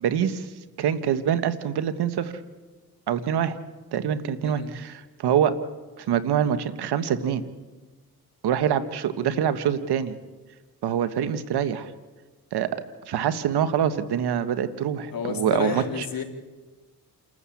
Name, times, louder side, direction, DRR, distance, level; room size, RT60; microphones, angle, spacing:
voice 1, 0.0-0.5 0.8-2.3 3.1-3.6 3.9-5.5 6.0-7.4 8.4-10.2 10.8-11.9 12.5-12.7 13.1-15.8, right 9 dB, 85° right, 12 dB, 1.5 m, -25 dB
voice 2, 15.1-16.2, left 6 dB, 65° left, 4 dB, 3.6 m, -30 dB
29.0 x 14.0 x 8.6 m, 1.3 s
cardioid pair, 75°, 38 cm